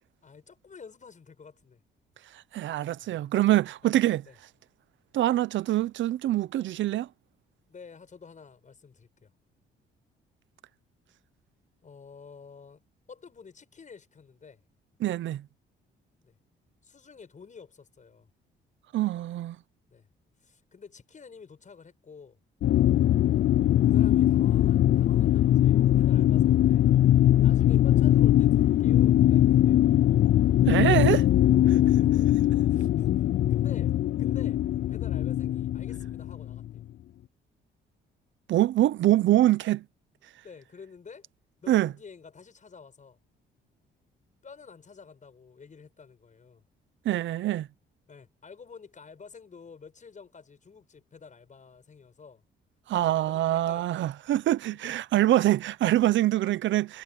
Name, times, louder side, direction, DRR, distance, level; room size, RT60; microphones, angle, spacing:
voice 1, 0.2-1.8 2.9-3.4 3.8-4.4 7.7-9.3 11.8-12.8 13.1-14.6 16.2-16.4 16.8-18.3 19.9-20.1 20.4-22.4 23.8-26.9 27.4-30.0 31.6-32.1 32.7-33.2 33.5-34.6 34.9-36.8 40.4-41.3 41.6-43.2 44.4-46.6 48.1-52.4 52.9-54.1 54.7-55.0, left 5 dB, 40° left, 6.8 m, -50 dB
voice 2, 2.5-4.2 5.1-7.1 15.0-15.4 18.9-19.6 30.7-31.3 38.5-39.8 41.7-41.9 47.0-47.7 52.9-57.0, right 14 dB, 75° right, 0.8 m, -24 dB
sound 1, 22.6-36.8, left 12 dB, 55° left, 0.4 m, -21 dB
cardioid pair, 90°, 20 cm